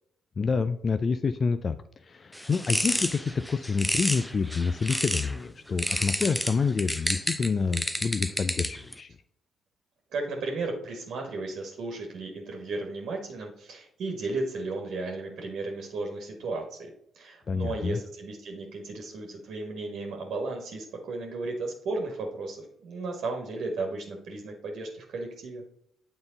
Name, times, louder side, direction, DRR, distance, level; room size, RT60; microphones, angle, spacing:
voice 1, 0.4-9.1 17.5-18.0, left 5 dB, 45° left, 11 dB, 0.4 m, -28 dB
sound 1, 2.3-5.4 5.8-8.9, equal, 5° left, 0.7 m, -30 dB
voice 2, 10.1-25.6, right 3 dB, 65° right, 2 dB, 1.4 m, -34 dB
8.8 x 4.0 x 3.8 m, 0.74 s
hypercardioid pair, 45°, 0 cm